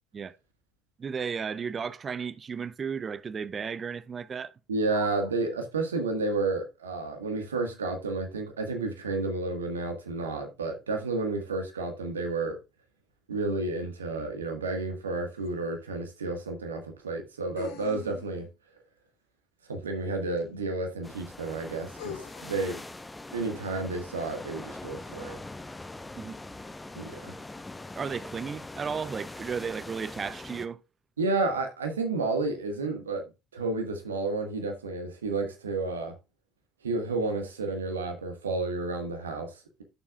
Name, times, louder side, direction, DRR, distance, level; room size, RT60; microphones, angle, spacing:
voice 1, 1.0-4.5 4.9-5.1 26.1-26.4 28.0-30.8, right 6 dB, 35° right, 0.6 m, -34 dB
voice 2, 4.7-12.6 13.3-18.5 19.7-22.8 23.3-25.4 26.9-27.3 31.2-33.2 33.5-36.1 36.8-39.8, right 3 dB, 80° right, 1.6 m, -31 dB
sound 1, 15.4-15.5 17.6-18.5 20.4-20.5 22.0-22.7, left 10 dB, 65° left, 1.7 m, -42 dB
sound 2, 21.0-30.7, left 2 dB, 15° left, 0.9 m, -42 dB
12.0 x 7.2 x 2.4 m
figure-of-eight pair, 55°, 0 cm